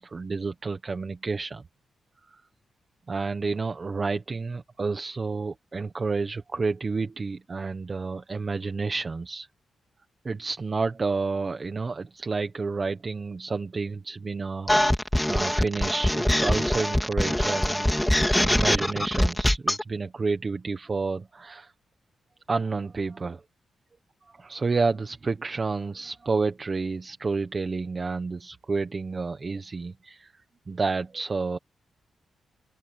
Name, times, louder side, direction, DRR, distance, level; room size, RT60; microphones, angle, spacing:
voice 1, 0.0-1.6 3.1-9.5 10.2-17.9 18.3-21.7 22.5-23.4 24.4-30.3 30.7-31.6, right 4 dB, 25° right, 1.1 m, -30 dB
sound 1, 14.7-19.8, left 1 dB, 5° left, 2.4 m, -23 dB
open air
wide cardioid pair, 180°, 0 cm